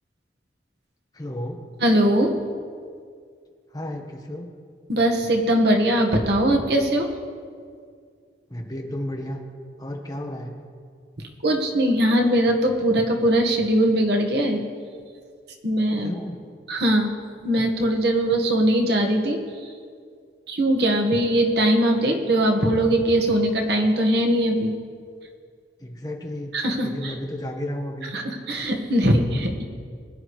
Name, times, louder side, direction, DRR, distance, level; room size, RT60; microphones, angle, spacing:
voice 1, 1.1-1.6 3.7-4.5 8.5-9.4 9.8-10.7 16.0-16.4 25.8-26.5 26.8-28.1, left 1 dB, 20° left, 1 dB, 1.2 m, -32 dB
voice 2, 1.8-2.4 4.9-7.1 11.4-14.6 15.6-16.1 16.7-17.1 17.4-19.7 20.5-24.7 26.5-27.1 28.1-29.6, right 1 dB, 65° right, 2 dB, 1.5 m, -21 dB
21.5 x 10.0 x 3.2 m, 2.1 s
head